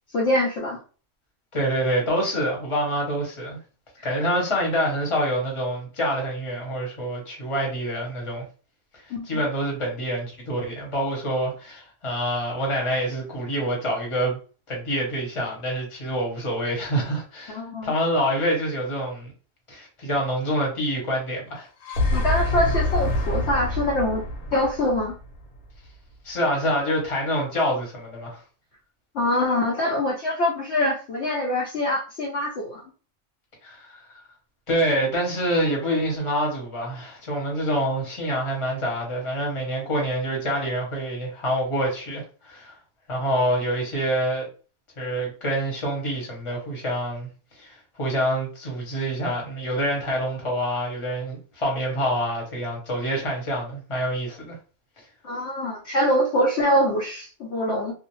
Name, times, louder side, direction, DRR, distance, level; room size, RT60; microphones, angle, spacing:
voice 1, 0.1-0.8 9.1-9.4 17.5-17.9 22.1-24.3 24.5-25.2 29.1-32.8 55.2-57.9, left 1 dB, 65° left, 0.7 m, -24 dB
voice 2, 1.5-3.6 4.0-8.4 8.9-14.4 14.7-19.3 19.7-21.7 26.2-28.4 33.6-34.1 34.7-42.7 43.1-44.5 45.0-47.3 47.6-54.5, equal, 25° left, 0.8 m, -26 dB
sound 1, 21.6-25.8, left 1 dB, 90° left, 1.1 m, -26 dB
2.5 x 2.0 x 2.9 m
omnidirectional pair, 1.5 m